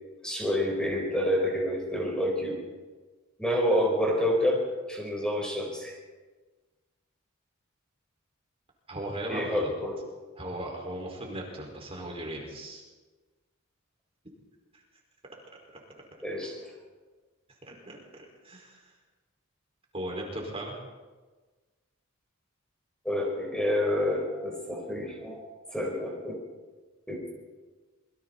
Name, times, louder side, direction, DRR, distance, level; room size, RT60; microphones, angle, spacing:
voice 1, 0.2-2.6 3.4-6.0 9.3-9.9 16.2-16.6 23.0-26.4 27.1-27.2, equal, 5° left, -1 dB, 4.3 m, -28 dB
voice 2, 8.9-9.7 10.3-12.8 14.7-14.8 17.7-18.9 19.9-20.8, right 1 dB, 30° right, 0 dB, 5.1 m, -37 dB
27.0 x 23.0 x 4.3 m, 1.3 s
head